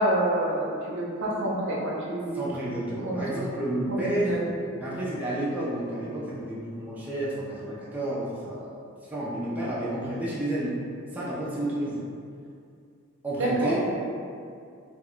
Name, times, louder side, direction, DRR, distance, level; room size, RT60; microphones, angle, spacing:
voice 1, 0.0-2.4 3.0-3.2 3.9-4.5 13.4-13.7, right 1 dB, 65° right, -4 dB, 0.5 m, -27 dB
voice 2, 2.3-4.4 4.8-8.8 9.1-10.8 11.1-12.0 13.2-13.8, right 1 dB, 10° right, -8 dB, 0.4 m, -30 dB
2.2 x 2.1 x 3.7 m, 2.3 s
head